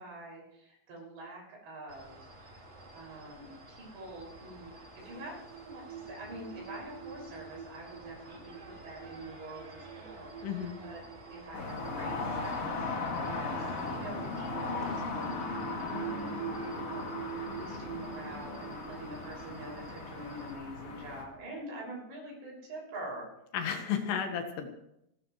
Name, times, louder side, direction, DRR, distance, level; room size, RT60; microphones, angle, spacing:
voice 1, 0.0-2.3 2.9-5.4 5.6-8.5 8.8-11.0 11.3-12.8 13.4-13.5 13.8-16.3 16.9-17.2 17.5-23.3, right 1 dB, 75° right, -2 dB, 8.4 m, -45 dB
sound 1, 1.9-20.5, right 2 dB, 30° right, 1.3 m, -51 dB
sound 2, 5.0-21.3, right 8 dB, 60° right, 1.6 m, -46 dB
voice 2, 10.4-10.7 23.5-24.7, left 8 dB, 75° left, 6 dB, 3.5 m, -33 dB
sound 3, 11.5-21.2, left 3 dB, 40° left, 2.5 m, -37 dB
29.5 x 13.5 x 3.2 m, 0.81 s
omnidirectional pair, 5.0 m